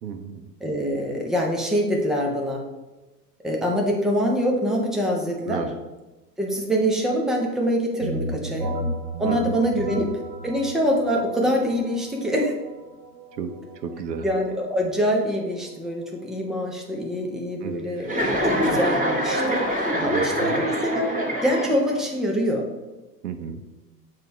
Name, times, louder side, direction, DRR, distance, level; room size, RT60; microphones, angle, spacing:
voice 1, 0.0-0.5 5.4-5.7 8.3-8.6 9.2-9.5 9.9-10.1 13.3-14.3 17.6-17.7 20.0-20.7 23.2-23.6, right 7 dB, 80° right, 8 dB, 0.9 m, -33 dB
voice 2, 0.6-2.6 3.4-5.6 6.4-8.8 9.2-10.1 10.4-12.5 14.2-21.1 21.4-22.7, equal, ahead, -1 dB, 0.3 m, -24 dB
sound 1, 8.0-17.6, right 1 dB, 55° right, 1.6 m, -35 dB
Chuckle chortle, 18.0-22.1, equal, 15° right, 1.2 m, -25 dB
7.5 x 2.8 x 4.5 m, 1.1 s
hypercardioid pair, 105°, 49 cm